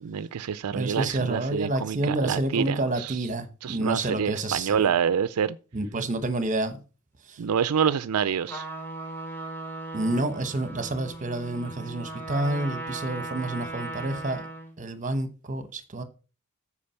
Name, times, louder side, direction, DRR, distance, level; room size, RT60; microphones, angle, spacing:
voice 1, 0.0-3.2 3.6-5.6 7.4-8.6, right 7 dB, 80° right, 0.4 m, -27 dB
voice 2, 0.7-4.9 5.7-6.8 7.3-7.4 9.9-14.4 14.8-16.0, right 2 dB, 35° right, 1.1 m, -29 dB
Trumpet, 8.4-14.7, right 2 dB, 10° left, 3.2 m, -37 dB
8.6 x 4.9 x 5.6 m
head